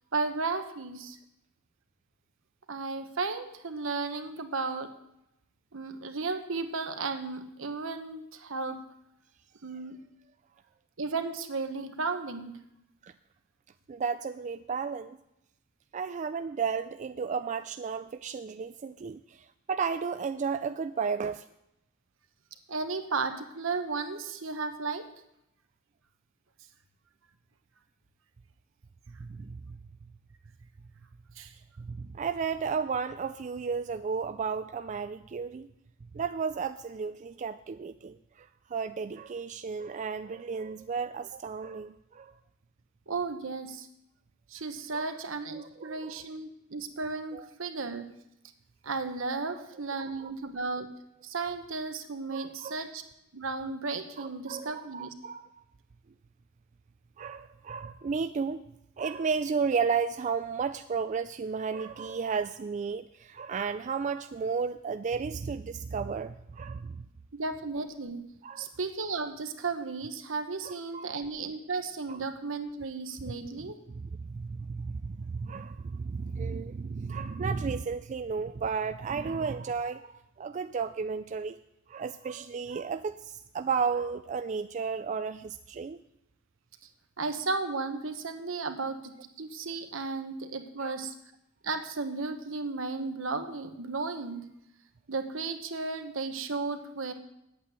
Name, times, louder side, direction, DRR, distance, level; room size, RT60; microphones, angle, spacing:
voice 1, 0.1-1.2 2.7-4.9 5.7-8.8 9.6-10.0 11.0-12.6 22.7-25.1 31.4-31.5 43.1-43.9 44.5-48.1 48.8-50.9 51.2-53.0 53.3-55.1 67.3-68.3 68.6-73.8 87.2-91.1 91.6-94.5 95.1-97.1, right 4 dB, 70° right, 8 dB, 1.2 m, -34 dB
voice 2, 13.9-15.2 15.9-21.5 29.2-29.8 31.8-35.7 36.1-42.3 44.9-45.1 45.5-46.2 47.3-47.5 50.2-50.3 52.3-52.8 54.2-55.6 57.2-58.6 59.0-67.1 68.4-68.7 70.6-71.1 72.1-72.2 73.2-81.6 81.9-86.0 90.8-91.0, right 5 dB, 35° right, 10 dB, 0.3 m, -33 dB
9.4 x 8.7 x 8.1 m, 0.84 s
head